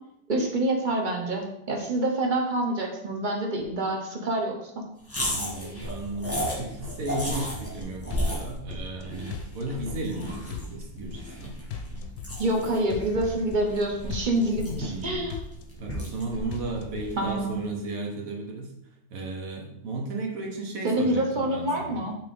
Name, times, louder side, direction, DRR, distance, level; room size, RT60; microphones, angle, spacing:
voice 1, 0.3-4.8 12.4-15.4 17.2-17.6 20.8-22.1, right 1 dB, 35° right, 1 dB, 1.0 m, -27 dB
sound 1, 5.1-17.5, equal, 10° left, 1.3 m, -35 dB
voice 2, 5.3-11.6 14.6-15.2 15.8-18.7 19.1-22.0, right 2 dB, 60° right, 1 dB, 1.5 m, -34 dB
sound 2, 7.5-7.8 8.1-9.0 9.3-10.2 10.5-11.4 11.7-12.6 12.9-13.8 14.1-15.0 15.3-16.2 16.5-17.1, left 7 dB, 80° left, 1.1 m, -39 dB
6.1 x 4.3 x 3.7 m, 0.80 s
omnidirectional pair, 1.7 m